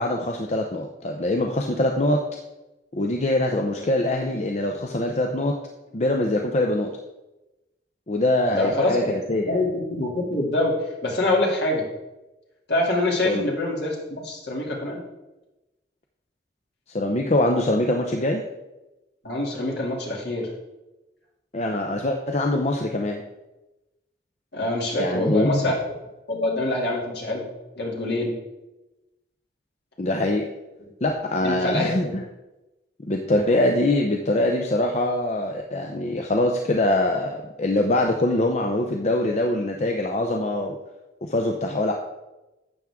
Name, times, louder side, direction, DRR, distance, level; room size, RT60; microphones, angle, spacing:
voice 1, 0.0-2.2 2.9-5.6 5.9-6.9 8.1-9.0 9.3-9.6 13.2-13.4 16.9-18.4 21.5-23.3 24.9-25.6 30.0-30.5 31.0-32.2 33.0-40.8 41.2-41.9, left 1 dB, 40° left, 2 dB, 0.7 m, -23 dB
voice 2, 8.5-9.0 9.5-10.7 11.0-11.8 12.7-13.9 14.2-15.0 19.2-20.5 24.5-25.8 26.3-27.4 27.8-28.4 31.4-32.1, left 1 dB, 65° left, -2 dB, 2.7 m, -25 dB
12.0 x 7.9 x 3.6 m, 1.0 s
head